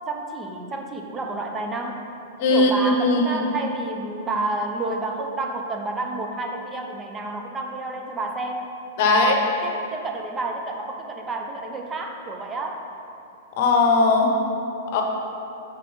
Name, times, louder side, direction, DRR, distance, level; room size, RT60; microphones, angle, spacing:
voice 1, 0.1-2.1 2.5-8.7 9.0-12.8, right 2 dB, 20° right, 3 dB, 0.7 m, -30 dB
voice 2, 2.4-3.4 9.0-9.3 13.6-14.3 14.9-15.0, left 3 dB, 50° left, 2 dB, 0.8 m, -19 dB
6.2 x 4.0 x 4.8 m, 2.7 s
figure-of-eight pair, 105°, 0 cm